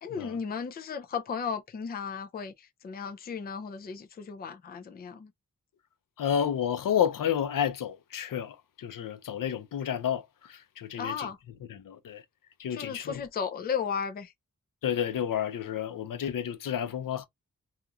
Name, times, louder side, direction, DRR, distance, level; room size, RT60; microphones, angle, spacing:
voice 1, 0.0-5.3 10.9-11.4 12.7-14.3, left 6 dB, 30° left, 0.4 m, -35 dB
voice 2, 6.2-11.3 11.7-12.2 12.6-13.2 14.8-17.3, left 9 dB, 80° left, 0.6 m, -31 dB
2.9 x 2.4 x 2.3 m
wide cardioid pair, 150°, 32 cm